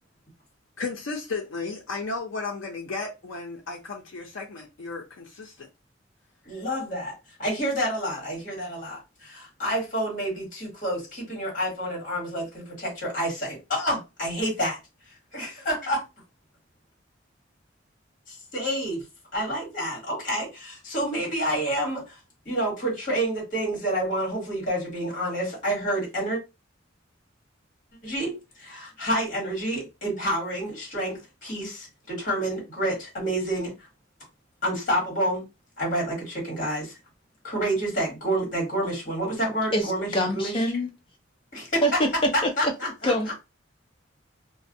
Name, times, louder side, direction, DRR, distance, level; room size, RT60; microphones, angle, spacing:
voice 1, 0.8-5.7, left 4 dB, 85° left, 0.5 m, -34 dB
voice 2, 6.5-7.1 7.4-9.0 9.6-11.0 11.3-12.5 12.8-14.7 15.3-16.0 18.5-19.0 19.3-20.5 20.9-22.0 22.5-26.4 28.0-28.3 28.7-31.2 31.4-31.7 32.1-33.7 34.6-35.4 35.8-36.1 36.5-36.8 37.4-40.6 41.5-41.6 42.6-43.1, right 1 dB, 45° left, 1.3 m, -28 dB
voice 3, 39.7-40.9 41.8-42.1 42.4-42.5 43.0-43.4, equal, 25° left, 0.6 m, -25 dB
2.4 x 2.1 x 2.6 m
head